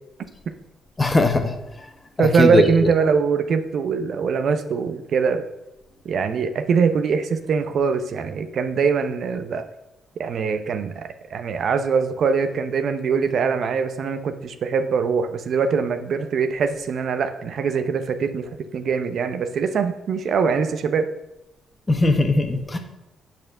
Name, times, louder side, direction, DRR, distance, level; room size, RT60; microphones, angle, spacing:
voice 1, 1.0-1.5 2.2-2.7 21.9-22.8, left 2 dB, 20° left, 6 dB, 1.2 m, -19 dB
voice 2, 2.2-5.4 6.0-9.7 10.2-21.1, right 5 dB, 60° right, 10 dB, 0.7 m, -22 dB
8.4 x 4.4 x 6.5 m, 0.93 s
cardioid pair, 90°, 0 cm